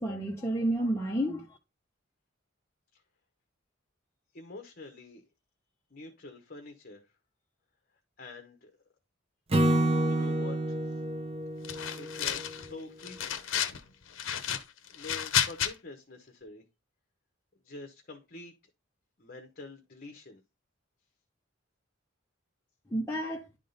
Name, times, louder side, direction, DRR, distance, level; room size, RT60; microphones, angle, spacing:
voice 1, 0.0-1.5 22.9-23.5, right 1 dB, 15° left, 0.7 m, -30 dB
voice 2, 4.3-5.2 5.9-7.1 8.2-8.7 10.1-11.0 11.9-13.4 14.9-16.6 17.6-18.5 19.2-20.4, left 3 dB, 45° left, 0.9 m, -46 dB
Acoustic guitar / Strum, 9.5-12.8, right 1 dB, 30° right, 0.6 m, -29 dB
sound 1, 11.6-12.7 13.0-13.8 14.1-15.7, left 9 dB, 70° left, 0.8 m, -31 dB
10.5 x 3.7 x 3.9 m
head